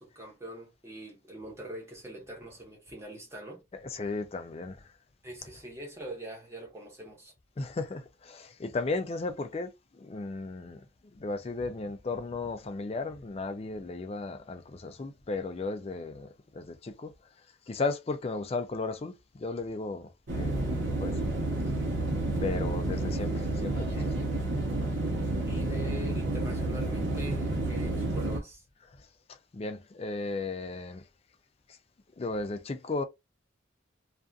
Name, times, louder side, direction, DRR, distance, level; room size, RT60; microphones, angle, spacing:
voice 1, 0.0-3.6 5.2-7.3 23.9-24.1 25.4-28.6, right 1 dB, 15° right, 0.9 m, -43 dB
voice 2, 3.8-4.9 7.6-10.8 11.1-17.1 17.7-21.3 22.4-24.1 28.9-31.0 31.7-31.8 32.2-33.0, left 3 dB, 30° left, 0.3 m, -35 dB
sound 1, 20.3-28.4, right 2 dB, 70° right, 0.9 m, -30 dB
2.4 x 2.4 x 2.3 m
head